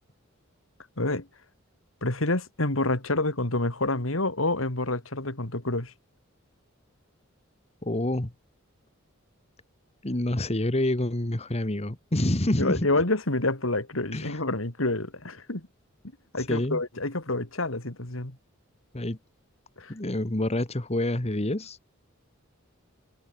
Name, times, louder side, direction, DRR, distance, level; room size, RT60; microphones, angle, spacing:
voice 1, 1.0-1.3 2.0-5.9 12.6-15.7 16.3-18.4 19.8-19.9, left 2 dB, 80° left, 3.3 m, -28 dB
voice 2, 7.8-8.3 10.0-12.9 14.1-14.4 16.4-16.8 18.9-19.2 19.9-21.8, left 1 dB, 30° left, 1.7 m, -27 dB
head